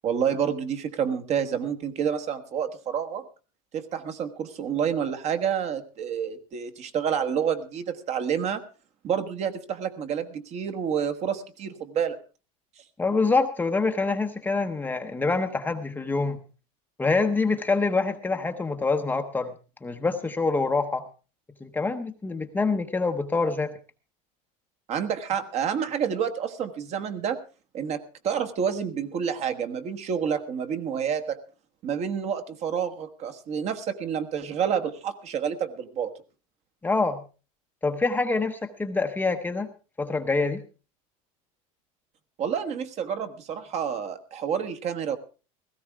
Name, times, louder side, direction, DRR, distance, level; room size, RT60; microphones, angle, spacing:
voice 1, 0.0-3.2 3.7-8.6 9.0-12.2 24.9-27.4 27.7-31.4 31.8-36.1 42.4-45.2, right 7 dB, 40° right, 8 dB, 1.3 m, -29 dB
voice 2, 13.0-16.4 17.0-19.5 19.8-21.0 21.6-23.7 36.8-37.2 37.8-39.7 40.0-40.6, left 3 dB, 10° left, 6 dB, 0.8 m, -25 dB
17.0 x 15.0 x 3.5 m, 0.34 s
supercardioid pair, 145°, 18 cm